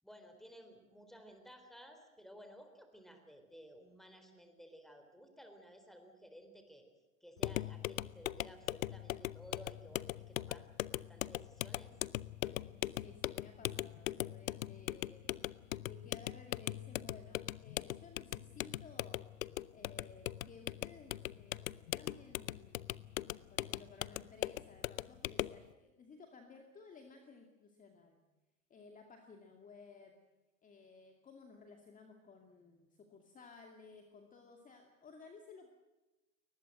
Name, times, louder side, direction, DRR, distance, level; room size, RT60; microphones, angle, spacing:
voice 1, 0.0-6.9 7.2-12.0, equal, ahead, 6 dB, 3.9 m, -56 dB
sound 1, 7.4-25.6, left 14 dB, 70° left, 0.8 m, -40 dB
voice 2, 12.5-15.3 15.8-19.3 19.7-22.8 23.5-28.2 28.7-30.1 30.6-35.7, left 4 dB, 20° left, 4 dB, 2.4 m, -57 dB
23.0 x 20.0 x 7.8 m, 1.1 s
hypercardioid pair, 115°, 41 cm